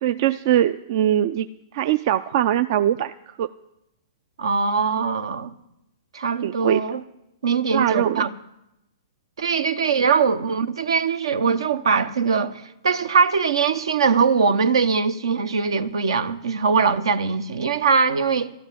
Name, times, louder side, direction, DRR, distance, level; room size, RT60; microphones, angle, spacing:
voice 1, 0.0-1.5 1.7-3.1 3.4-3.5 6.4-6.8 7.7-8.3, right 11 dB, 50° right, 0.4 m, -21 dB
voice 2, 4.4-5.5 6.1-7.0 7.4-8.3 9.4-18.5, right 5 dB, 75° right, 0.9 m, -21 dB
13.0 x 7.2 x 9.8 m
hypercardioid pair, 120°, 3 cm